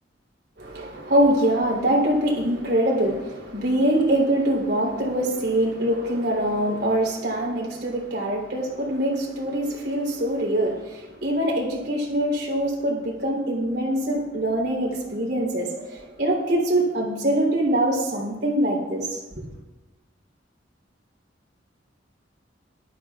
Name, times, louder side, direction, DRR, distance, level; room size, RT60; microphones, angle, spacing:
voice 1, 0.6-19.4, right 1 dB, 60° right, -2 dB, 3.6 m, -24 dB
18.5 x 12.5 x 2.5 m, 1.1 s
head